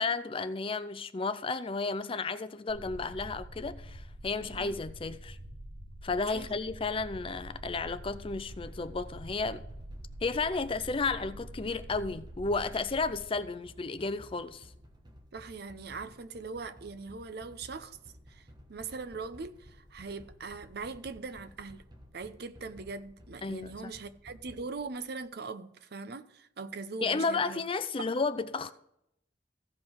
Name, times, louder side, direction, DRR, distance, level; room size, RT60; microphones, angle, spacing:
voice 1, 0.0-5.4 6.0-9.6 10.2-14.7 23.4-23.9 27.0-28.7, left 4 dB, 30° left, 0.5 m, -33 dB
sound 1, 2.7-13.2, right 1 dB, 80° right, 3.6 m, -46 dB
voice 2, 4.4-4.7 6.3-6.5 15.3-18.0 18.3-21.8 22.1-27.6, right 4 dB, 60° right, 0.7 m, -41 dB
sound 2, 7.0-25.3, equal, 25° right, 1.4 m, -55 dB
15.0 x 5.3 x 4.6 m
head